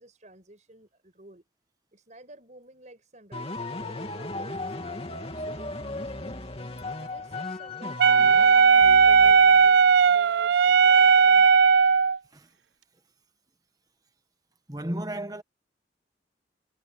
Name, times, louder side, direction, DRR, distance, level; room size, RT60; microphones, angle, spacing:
voice 1, 0.0-1.4 1.9-6.5 7.0-11.8, right 1 dB, 40° right, 6.5 m, -51 dB
sound 1, 3.3-9.8, left 2 dB, 35° left, 2.9 m, -36 dB
Wind instrument woodwind instrument, 8.0-12.2, right 6 dB, 65° right, 0.4 m, -17 dB
voice 2, 14.7-15.4, right 1 dB, 20° right, 1.4 m, -33 dB
head